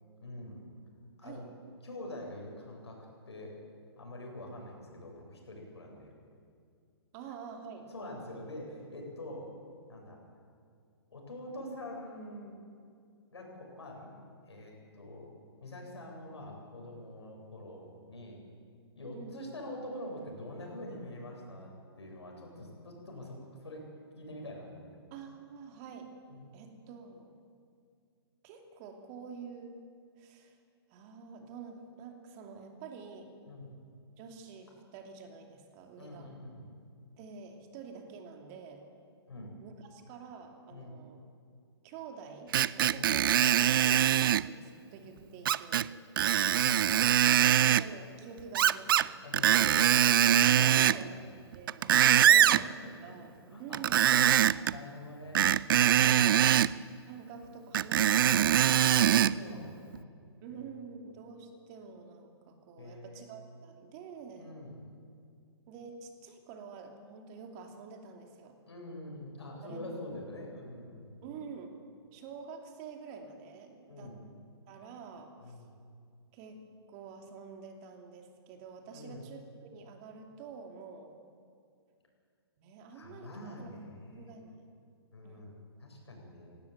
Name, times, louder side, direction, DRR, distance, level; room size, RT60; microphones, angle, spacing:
voice 1, 0.2-0.7 1.2-1.5 1.8-3.6 4.0-6.1 7.9-9.5 9.9-10.2 11.1-12.6 13.3-15.3 15.6-18.4 19.0-23.9 24.1-25.0 26.3-26.4 33.5-33.8 36.0-36.7 39.3-39.5 40.7-41.0 42.8-43.0 46.5-47.2 49.2-50.0 50.6-51.2 51.8-53.1 53.5-53.8 54.4-56.4 59.1-60.0 60.5-60.8 62.8-63.3 64.4-64.8 68.7-71.3 73.9-74.2 75.4-75.7 78.9-79.2 82.9-84.3 85.1-86.6, left 1 dB, 80° left, 0 dB, 7.9 m, -45 dB
voice 2, 7.1-7.9 19.1-19.4 25.1-26.1 26.5-27.3 28.4-30.6 30.9-33.3 34.2-36.3 37.2-38.9 39.6-41.2 41.8-45.9 47.5-49.2 50.5-51.2 51.5-52.6 53.0-53.3 53.6-54.0 57.0-59.1 60.4-64.6 65.7-68.6 69.6-70.1 71.2-71.7 72.1-74.2 74.7-75.5 76.3-76.6 76.9-81.2 82.6-83.7 84.1-84.7 85.2-85.5, right 5 dB, 35° right, 4 dB, 2.8 m, -48 dB
Screech, 42.5-44.5 45.5-45.9 46.2-47.8 48.5-49.1 49.3-51.0 51.5-52.6 53.7-54.7 55.4-56.7 57.7-59.3 59.9-60.0, right 10 dB, 55° right, 0.5 m, -23 dB
17.5 x 17.5 x 9.3 m, 2.3 s
hypercardioid pair, 130°, 14 cm